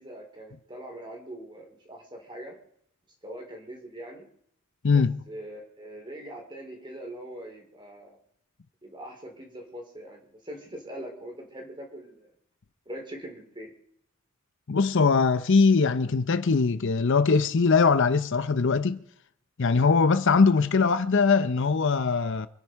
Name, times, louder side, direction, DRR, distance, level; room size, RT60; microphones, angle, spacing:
voice 1, 0.0-2.5 3.2-4.3 5.3-8.2 8.8-12.3 12.9-13.7, right 1 dB, 20° right, 4.0 m, -42 dB
voice 2, 4.8-5.2 14.7-19.0 19.6-22.5, left 4 dB, 55° left, 0.6 m, -21 dB
26.5 x 9.8 x 4.6 m
head